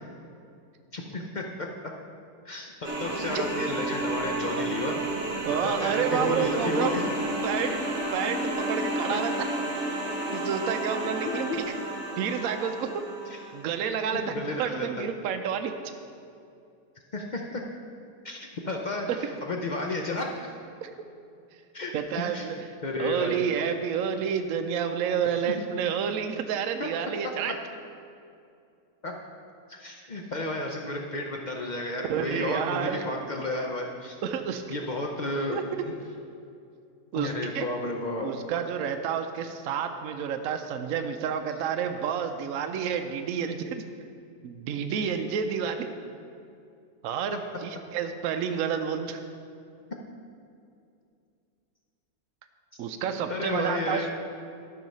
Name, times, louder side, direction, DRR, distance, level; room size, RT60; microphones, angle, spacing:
voice 1, 0.9-1.7 2.4-5.0 5.6-7.1 9.1-9.2 11.5-11.6 13.3-13.4 14.1-15.1 17.1-17.7 18.2-20.5 21.7-21.9 22.3-22.5 22.8-23.4 25.4-25.6 26.8-26.9 27.5-27.6 29.0-29.1 29.7-34.2 34.7-35.9 37.1-38.3 53.1-54.1, left 2 dB, 65° left, 1 dB, 0.4 m, -32 dB
sound 1, 2.8-13.6, right 1 dB, 45° right, 1.4 m, -31 dB
voice 2, 5.4-7.0 7.4-7.8 8.1-9.5 10.3-11.5 12.2-12.9 13.5-15.7 19.1-19.2 20.8-20.9 21.9-22.6 23.0-27.5 32.1-33.0 34.2-34.6 35.5-35.6 37.1-37.7 38.2-43.8 44.4-45.9 47.0-49.2 52.8-54.1, right 7 dB, 70° right, 6 dB, 0.9 m, -29 dB
12.0 x 5.6 x 5.4 m, 2.5 s
omnidirectional pair, 1.7 m